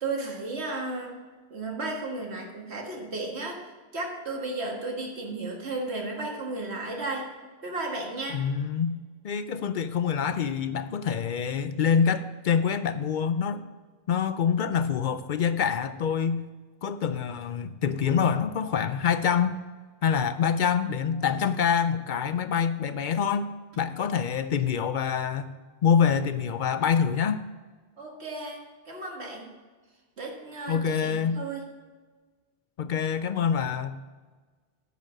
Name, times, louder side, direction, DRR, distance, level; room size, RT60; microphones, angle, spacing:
voice 1, 0.0-1.1 1.5-3.6 3.9-7.3 7.6-8.4 28.0-29.5 30.2-31.7, right 2 dB, 85° right, 1 dB, 1.9 m, -34 dB
voice 2, 8.3-9.0 9.2-13.6 14.1-16.4 16.8-19.6 20.0-25.5 25.8-27.4 30.7-31.4 32.8-34.0, left 7 dB, 60° left, 11 dB, 0.6 m, -26 dB
9.3 x 5.1 x 7.4 m, 1.4 s
omnidirectional pair, 1.1 m